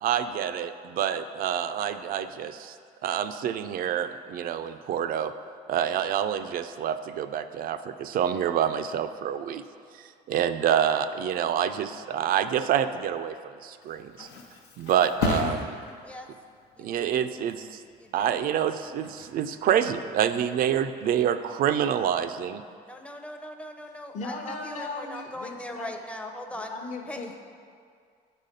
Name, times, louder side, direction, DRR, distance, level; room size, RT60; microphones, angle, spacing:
voice 1, 0.0-2.7 3.0-5.3 5.7-9.6 10.3-14.3 14.8-15.8 16.8-17.8 18.1-22.6, right 9 dB, 60° right, 10 dB, 0.4 m, -27 dB
Thump thud, 13.6-21.1 21.5-21.9, left 4 dB, 90° left, 0.7 m, -36 dB
voice 2, 16.8-17.3 18.0-18.4 22.9-26.7 27.1-27.4, left 1 dB, 5° left, 4 dB, 0.5 m, -40 dB
voice 3, 24.1-26.0 26.5-27.4, left 3 dB, 45° left, 1 dB, 0.8 m, -37 dB
8.0 x 4.2 x 5.1 m, 2.2 s
cardioid pair, 110°, 17 cm